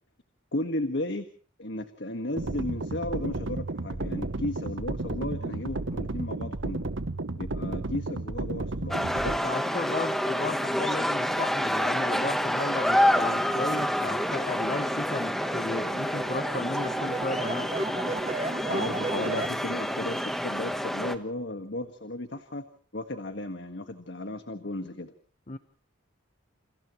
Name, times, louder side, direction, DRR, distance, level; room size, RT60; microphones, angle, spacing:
voice 1, 0.5-1.3 1.6-6.9 7.3-9.1 18.7-22.6 22.9-25.1, left 1 dB, 55° left, 7 dB, 1.6 m, -34 dB
sound 1, 2.4-9.4, right 2 dB, 65° right, 1.0 m, -33 dB
sound 2, 8.9-21.1, equal, ahead, 1.3 m, -28 dB
voice 2, 9.2-17.7 25.5-25.6, left 2 dB, 35° left, 11 dB, 0.9 m, -34 dB
sound 3, 12.5-19.5, right 3 dB, 30° right, 0.9 m, -36 dB
29.0 x 29.0 x 3.1 m, 0.43 s
head